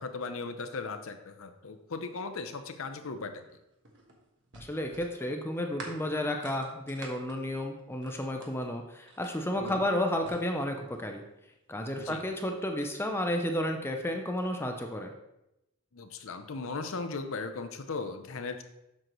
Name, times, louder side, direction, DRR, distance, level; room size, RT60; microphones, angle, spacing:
voice 1, 0.0-3.4 9.6-9.8 12.0-12.2 15.9-18.6, left 4 dB, 60° left, 8 dB, 0.7 m, -37 dB
sound 1, 3.4-8.7 9.1-11.2 12.1-12.9, right 2 dB, 55° right, 1.3 m, -48 dB
voice 2, 4.6-11.2 11.7-15.1, left 1 dB, 10° left, 4 dB, 0.5 m, -32 dB
7.6 x 6.3 x 3.0 m, 0.89 s
head